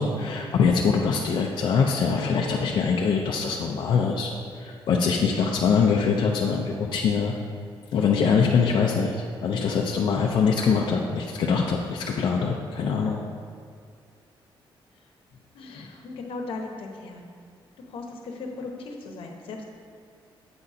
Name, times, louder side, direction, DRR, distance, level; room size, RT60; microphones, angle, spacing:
voice 1, 0.0-4.3 4.6-7.3 7.9-9.2 9.4-13.2, left 5 dB, 60° left, -1 dB, 0.5 m, -23 dB
voice 2, 15.5-17.3 17.9-19.6, left 3 dB, 80° left, 2 dB, 0.9 m, -37 dB
7.7 x 4.2 x 4.9 m, 2.2 s
wide cardioid pair, 170°, 9 cm